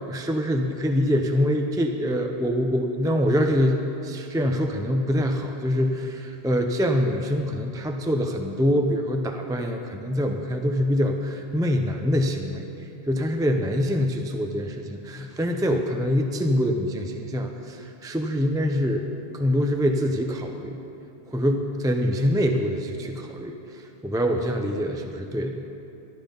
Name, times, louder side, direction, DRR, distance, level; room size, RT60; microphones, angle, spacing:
voice 1, 0.1-12.6 13.1-19.0 19.3-20.8 21.3-25.6, equal, 5° right, 4 dB, 0.3 m, -25 dB
12.5 x 10.0 x 5.2 m, 2.9 s
omnidirectional pair, 1.1 m